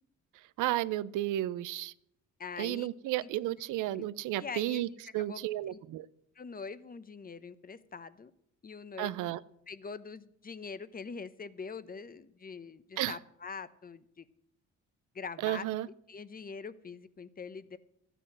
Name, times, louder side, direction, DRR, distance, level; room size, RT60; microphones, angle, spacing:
voice 1, 0.6-1.9 2.6-4.9 5.1-6.1 9.0-9.4 13.0-13.2 15.4-15.9, right 15 dB, 90° right, 18 dB, 0.6 m, -32 dB
voice 2, 2.4-2.9 3.2-3.3 3.9-4.1 4.4-5.4 5.7-5.8 6.4-8.3 8.6-9.3 9.7-14.3 15.1-15.7 16.1-17.8, left 5 dB, 30° left, 16 dB, 0.9 m, -43 dB
13.0 x 10.0 x 6.1 m, 0.76 s
cardioid pair, 90°, 30 cm